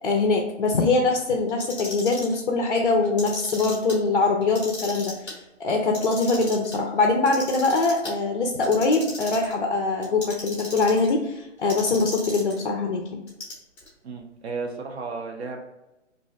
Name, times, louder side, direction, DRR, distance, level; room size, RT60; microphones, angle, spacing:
voice 1, 0.0-5.3 5.6-13.2, left 3 dB, 45° left, 2 dB, 0.4 m, -23 dB
Clock, 1.5-2.3 3.0-3.9 4.4-5.3 5.8-6.7 7.3-8.1 8.6-9.5 10.0-11.1 11.7-12.6 13.3-13.9, left 2 dB, 5° left, 0.6 m, -36 dB
voice 2, 14.0-15.6, right 4 dB, 60° right, 2 dB, 0.6 m, -34 dB
2.6 x 2.3 x 4.0 m, 0.94 s
figure-of-eight pair, 145°, 37 cm